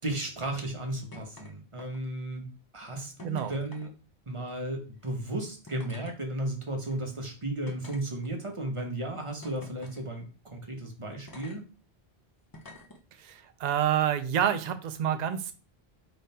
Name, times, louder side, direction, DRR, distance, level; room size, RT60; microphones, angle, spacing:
voice 1, 0.0-2.5 2.7-3.9 4.3-11.6, right 1 dB, 30° right, 2 dB, 1.0 m, -34 dB
sound 1, 1.1-1.5 1.8-2.2 3.2-3.9 4.9-5.1 5.7-6.2 6.8-6.9 7.7-8.5 9.4-10.0 11.3-11.6 12.5-13.0 14.1-14.2, left 1 dB, 25° left, 0.6 m, -48 dB
voice 2, 13.2-15.5, right 9 dB, 50° right, 9 dB, 0.6 m, -28 dB
3.8 x 3.4 x 4.2 m, 0.34 s
omnidirectional pair, 1.1 m